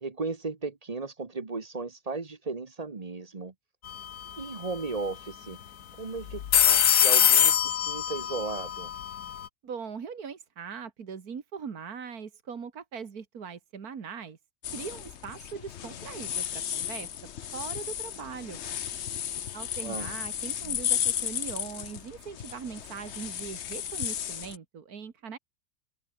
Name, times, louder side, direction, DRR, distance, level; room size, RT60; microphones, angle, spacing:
voice 1, 0.0-3.5 4.4-5.6 6.0-8.9 19.8-20.2, right 3 dB, 25° right, 1.2 m, -36 dB
sound 1, 3.9-4.2 4.4-4.5 6.3-9.5, left 9 dB, 85° left, 1.6 m, -23 dB
voice 2, 9.6-14.4 14.7-17.1 17.5-18.6 19.5-25.4, right 6 dB, 80° right, 2.3 m, -40 dB
sound 2, 14.6-24.6, left 9 dB, 55° left, 1.0 m, -34 dB
open air
omnidirectional pair, 1.6 m